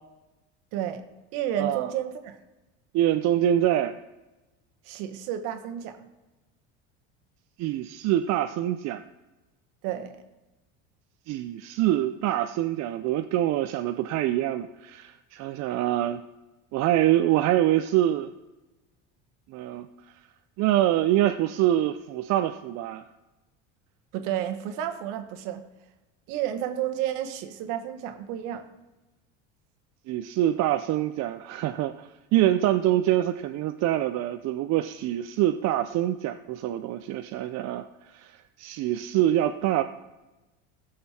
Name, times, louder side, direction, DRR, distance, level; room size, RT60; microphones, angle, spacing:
voice 1, 0.7-1.0 1.3-2.4 4.8-6.1 9.8-10.2 24.1-25.6 26.3-28.7, right 11 dB, 70° right, 7 dB, 1.4 m, -31 dB
voice 2, 1.6-1.9 2.9-4.0 7.6-9.0 11.3-16.2 16.7-18.3 19.5-19.9 20.6-23.0 30.1-37.8 38.1-39.8, right 13 dB, 55° right, 7 dB, 0.6 m, -25 dB
16.5 x 6.7 x 4.3 m, 1.1 s
supercardioid pair, 100°, 32 cm